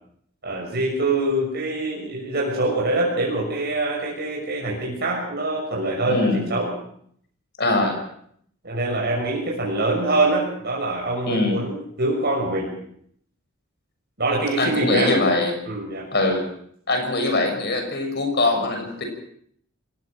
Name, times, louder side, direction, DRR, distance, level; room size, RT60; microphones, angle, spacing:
voice 1, 0.4-6.7 7.8-7.9 8.6-12.7 14.2-15.2 15.6-16.1, right 2 dB, 45° right, -3 dB, 6.4 m, -24 dB
voice 2, 6.1-6.4 7.6-8.0 11.3-11.6 14.6-15.5 16.1-16.5 16.9-19.0, left 2 dB, 50° left, 4 dB, 6.5 m, -22 dB
27.5 x 18.5 x 6.2 m, 0.66 s
head